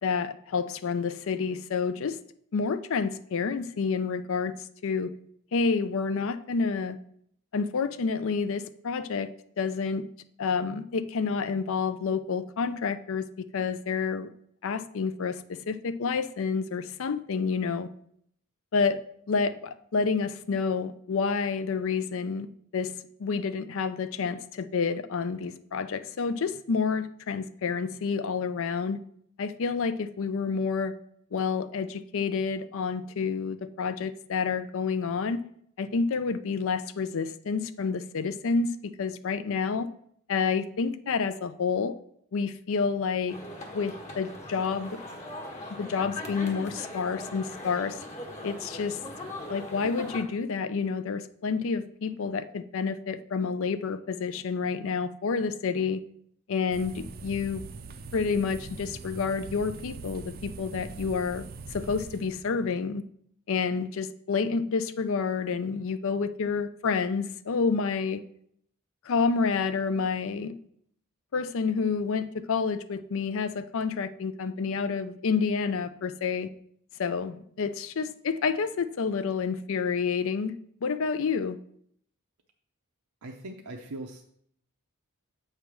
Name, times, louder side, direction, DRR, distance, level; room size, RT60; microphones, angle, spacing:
voice 1, 0.0-2.2 2.5-4.6 4.8-5.1 5.5-7.0 7.5-9.3 9.6-10.0 10.4-14.3 14.6-17.9 18.7-19.0 19.3-29.0 29.4-30.9 31.3-35.4 35.8-39.9 40.3-42.0 42.3-43.4 43.7-45.0 45.8-48.0 48.4-49.0 49.5-56.0 56.5-57.6 58.1-63.0 63.5-68.2 69.0-70.5 71.3-76.5 77.0-81.6, left 5 dB, 60° left, 0.4 m, -29 dB
sound 1, 43.3-50.2, left 1 dB, 30° left, 1.1 m, -40 dB
sound 2, 56.7-62.5, right 4 dB, 45° right, 0.5 m, -42 dB
voice 2, 83.2-84.2, right 2 dB, 85° right, 0.7 m, -40 dB
8.0 x 3.3 x 6.0 m
head